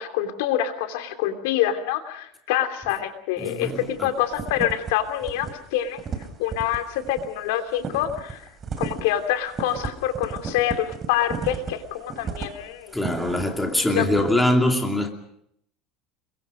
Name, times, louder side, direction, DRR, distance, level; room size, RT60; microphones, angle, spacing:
voice 1, 0.0-6.0 6.4-8.5 8.8-12.9 13.9-14.0, left 11 dB, 80° left, 3.1 m, -26 dB
voice 2, 3.4-4.1 12.9-15.1, left 1 dB, 5° left, 2.8 m, -23 dB
sound 1, 3.7-4.0 4.3-4.9 5.2-5.5 5.8-13.6 14.0-14.3, right 5 dB, 25° right, 3.0 m, -33 dB
29.5 x 22.5 x 5.2 m
cardioid pair, 155°, 0 cm